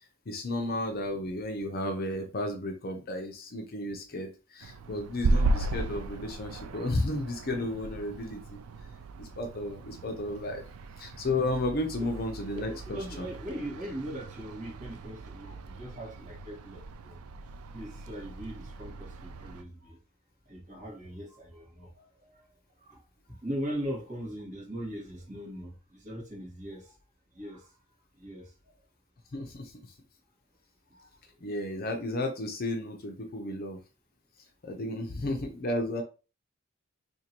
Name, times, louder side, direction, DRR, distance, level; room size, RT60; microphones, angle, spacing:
voice 1, 0.3-8.6 9.2-10.6 11.0-13.3 29.3-29.7 31.4-33.8 34.6-36.0, left 1 dB, 45° left, 4 dB, 0.6 m, -33 dB
sound 1, 4.6-19.6, right 2 dB, 75° right, 0.4 m, -36 dB
voice 2, 12.5-17.2 17.7-20.0 20.4-22.5 22.8-23.0 23.3-27.0 27.3-27.8 28.2-28.7 30.9-31.1 34.7-35.1, equal, 35° right, -3 dB, 1.5 m, -40 dB
2.9 x 2.7 x 4.4 m, 0.32 s
head